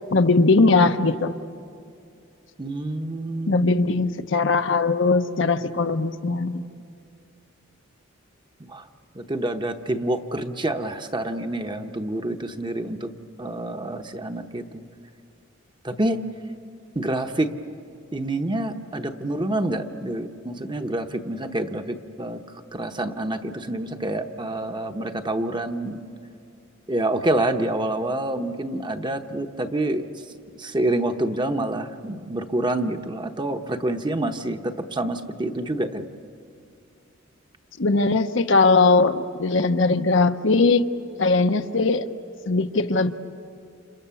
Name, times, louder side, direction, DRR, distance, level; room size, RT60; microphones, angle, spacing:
voice 1, 0.1-1.3 3.5-6.6 37.8-40.8 41.2-42.1 42.5-43.1, left 3 dB, 60° left, 8 dB, 0.9 m, -20 dB
voice 2, 2.6-3.7 8.6-8.8 9.1-13.1 13.4-14.8 15.8-16.2 16.9-17.5 18.1-22.4 22.7-26.0 26.9-30.0 30.5-36.1, right 1 dB, 20° right, 6 dB, 1.0 m, -27 dB
30.0 x 27.5 x 7.1 m, 2.4 s
head